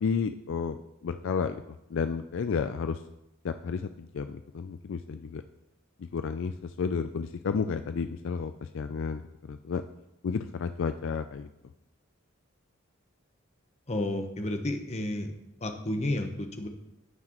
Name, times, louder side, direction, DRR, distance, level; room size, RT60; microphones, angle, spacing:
voice 1, 0.0-1.6 1.9-3.0 3.4-5.4 6.0-9.2 9.5-9.8 10.2-11.5, left 5 dB, 65° left, 9 dB, 0.4 m, -32 dB
voice 2, 13.9-15.3 15.6-16.7, left 1 dB, 30° left, 5 dB, 0.9 m, -31 dB
15.5 x 5.9 x 3.0 m, 0.87 s
head